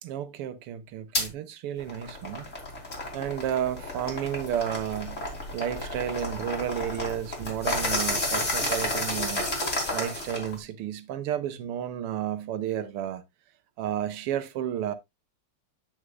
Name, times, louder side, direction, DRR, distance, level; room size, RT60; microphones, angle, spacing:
voice 1, 0.0-2.5 3.1-5.3 5.5-9.4 9.9-13.2 13.8-14.9, right 10 dB, 90° right, 1.8 m, -32 dB
sound 1, 1.1-1.3 1.8-10.6, left 2 dB, 35° left, 2.9 m, -31 dB
9.4 x 6.4 x 2.4 m
omnidirectional pair, 2.4 m